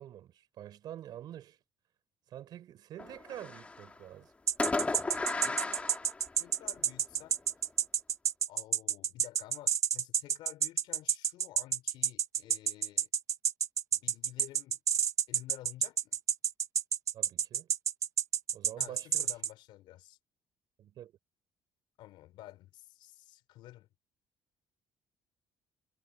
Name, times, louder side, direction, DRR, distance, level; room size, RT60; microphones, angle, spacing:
voice 1, 0.0-1.6 2.3-4.3 17.1-17.7 18.5-19.3 20.8-21.1, right 11 dB, 55° right, 4.2 m, -47 dB
Fireworks, 3.0-4.0 4.6-6.8, left 3 dB, 15° left, 1.4 m, -35 dB
sound 1, 4.5-19.5, right 8 dB, 40° right, 0.9 m, -29 dB
voice 2, 5.4-5.9 6.4-7.4 8.5-13.1 13.9-14.8 15.3-16.2 18.8-20.2 22.0-23.9, left 15 dB, 75° left, 3.6 m, -51 dB
cardioid pair, 135°, 8 cm